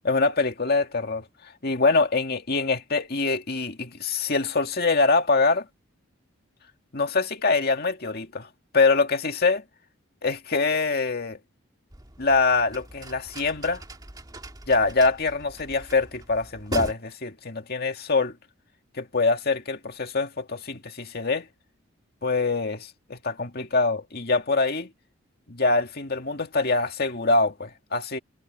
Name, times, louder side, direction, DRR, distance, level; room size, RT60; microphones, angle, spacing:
voice 1, 0.0-1.3 1.6-5.7 6.9-8.5 8.7-9.6 10.2-11.4 12.2-13.8 14.7-18.3 18.9-21.5 22.2-24.9 25.5-28.2, left 3 dB, 50° left, 2.1 m, -24 dB
sound 1, 11.9-16.9, right 1 dB, 20° right, 2.0 m, -40 dB
head